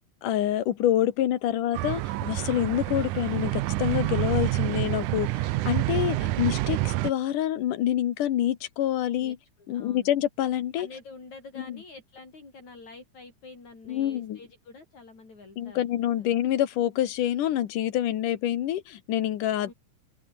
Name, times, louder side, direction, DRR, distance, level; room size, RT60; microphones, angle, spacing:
voice 1, 0.2-9.4 9.7-10.9 11.6-11.8 13.9-14.4 15.6-19.7, left 12 dB, 80° left, 3.0 m, -27 dB
sound 1, 1.7-7.1, right 17 dB, 75° right, 2.1 m, -28 dB
voice 2, 9.2-10.1 10.8-16.0 19.6-19.7, left 3 dB, 60° left, 8.7 m, -47 dB
open air
omnidirectional pair, 3.7 m